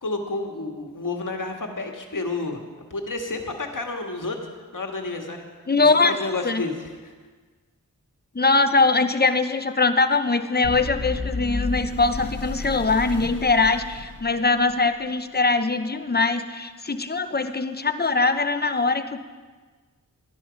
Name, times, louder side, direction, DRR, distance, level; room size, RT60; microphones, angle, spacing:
voice 1, 0.0-2.6 2.9-5.5 5.8-7.1, left 3 dB, 65° left, 3 dB, 1.7 m, -30 dB
voice 2, 5.7-6.2 6.4-6.6 8.3-19.2, left 3 dB, 30° left, 9 dB, 0.8 m, -22 dB
sound 1, 10.6-14.8, left 3 dB, 45° left, 1.1 m, -32 dB
13.0 x 11.0 x 5.2 m, 1.4 s
wide cardioid pair, 45°, 35 cm